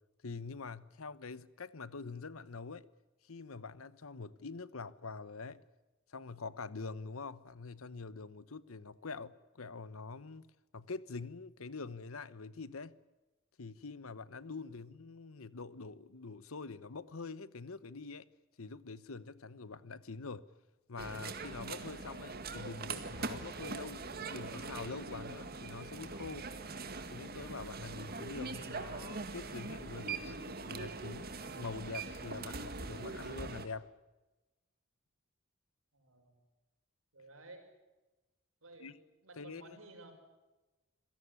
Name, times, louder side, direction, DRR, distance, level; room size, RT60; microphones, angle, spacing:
voice 1, 0.2-2.9 3.2-5.6 6.1-13.0 13.6-18.3 18.6-20.5 20.9-26.5 27.1-31.3 31.6-33.9 38.8-39.0 39.3-39.8, left 4 dB, 80° left, 1.0 m, -45 dB
sound 1, 21.0-33.7, right 3 dB, 45° right, 2.0 m, -42 dB
voice 2, 35.9-36.4 37.1-37.7 38.6-39.0 39.2-40.1, right 2 dB, 75° right, 6.0 m, -54 dB
27.0 x 17.0 x 9.7 m
head